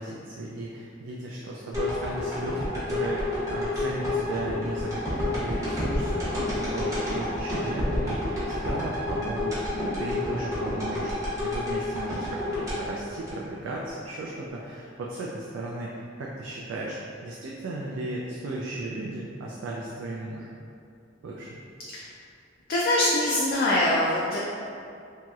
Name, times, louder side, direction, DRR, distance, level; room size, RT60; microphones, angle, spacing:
voice 1, 0.0-20.5 21.2-21.6, right 2 dB, 75° right, -3 dB, 0.3 m, -35 dB
sound 1, 1.7-13.9 14.3-14.4, left 1 dB, 15° right, 0.7 m, -29 dB
voice 2, 22.7-24.4, left 1 dB, 50° left, -5 dB, 0.3 m, -23 dB
2.9 x 2.8 x 2.3 m, 2.5 s
head